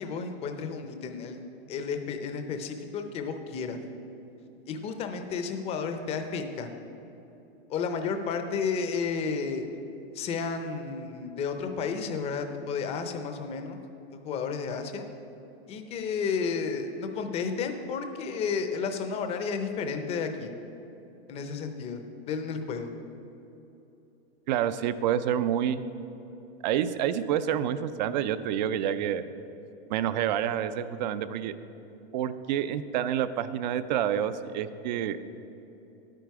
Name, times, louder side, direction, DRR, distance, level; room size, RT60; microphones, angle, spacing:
voice 1, 0.0-1.4 1.7-3.8 4.7-6.7 7.7-9.7 10.1-13.8 14.1-15.0 15.7-20.5 21.3-22.0 22.3-22.9, left 5 dB, 20° left, 7 dB, 0.6 m, -32 dB
voice 2, 24.5-25.8 26.6-29.2 29.9-31.5 32.1-35.2, right 10 dB, 45° right, 13 dB, 0.5 m, -28 dB
9.9 x 9.1 x 4.7 m, 2.9 s
supercardioid pair, 155°, 32 cm